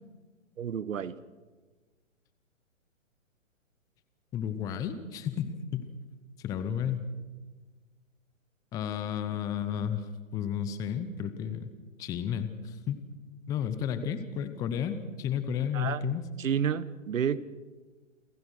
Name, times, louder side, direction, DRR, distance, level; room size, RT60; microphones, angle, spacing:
voice 1, 0.6-1.2 15.7-16.0 16.4-17.4, right 8 dB, 75° right, 18 dB, 1.1 m, -30 dB
voice 2, 4.3-5.9 6.4-7.1 8.7-10.1 10.3-11.7 12.0-13.0 13.5-16.2, left 8 dB, 10° left, 11 dB, 0.6 m, -32 dB
28.0 x 16.0 x 6.3 m, 1.3 s
hypercardioid pair, 140°, 39 cm